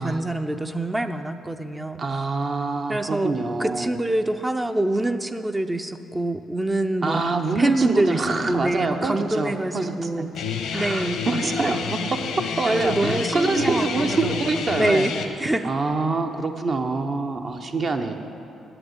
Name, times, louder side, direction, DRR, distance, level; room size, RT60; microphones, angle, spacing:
voice 1, 0.0-2.0 2.9-3.3 3.6-7.2 7.6-10.3 10.7-11.2 12.7-14.5 14.8-15.1 15.4-15.7, right 1 dB, 15° right, 7 dB, 0.5 m, -25 dB
voice 2, 2.0-3.9 7.0-10.3 10.7-12.2 12.6-15.1 15.6-18.2, right 3 dB, 45° right, 5 dB, 0.8 m, -25 dB
Guitar, 10.3-15.3, left 6 dB, 85° left, 0.9 m, -29 dB
7.9 x 7.8 x 7.9 m, 2.8 s
cardioid pair, 90°, 0 cm